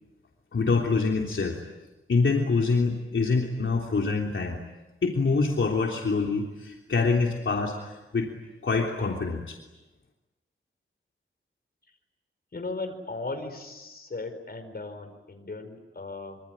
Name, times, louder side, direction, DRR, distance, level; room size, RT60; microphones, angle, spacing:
voice 1, 0.5-1.6 2.1-4.6 5.0-8.3 8.6-9.6, left 4 dB, 70° left, 0 dB, 3.3 m, -25 dB
voice 2, 12.5-16.4, left 3 dB, 50° left, 6 dB, 4.7 m, -37 dB
26.0 x 25.5 x 9.0 m, 1.1 s
wide cardioid pair, 115°, 21 cm